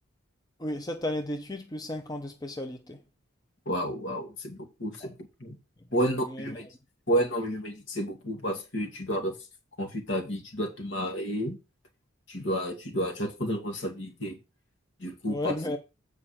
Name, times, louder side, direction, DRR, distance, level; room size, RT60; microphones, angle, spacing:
voice 1, 0.6-3.0 5.0-5.1 5.9-6.6 15.2-15.8, left 1 dB, 20° left, 0.8 m, -34 dB
voice 2, 3.7-5.1 5.4-5.6 5.9-6.7 7.1-9.3 9.8-11.6 12.3-14.4 15.0-15.5, equal, 65° left, 2.4 m, -31 dB
8.5 x 5.0 x 5.8 m
head